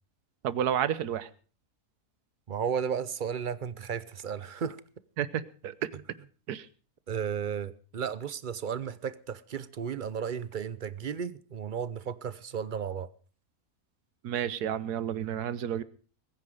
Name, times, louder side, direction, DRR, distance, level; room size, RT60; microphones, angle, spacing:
voice 1, 0.4-1.3 5.2-5.9 6.5-6.7 14.2-15.8, right 9 dB, 90° right, 1.4 m, -31 dB
voice 2, 2.5-4.8 7.1-13.1, right 7 dB, 45° right, 0.7 m, -34 dB
21.0 x 9.8 x 5.0 m
omnidirectional pair, 1.6 m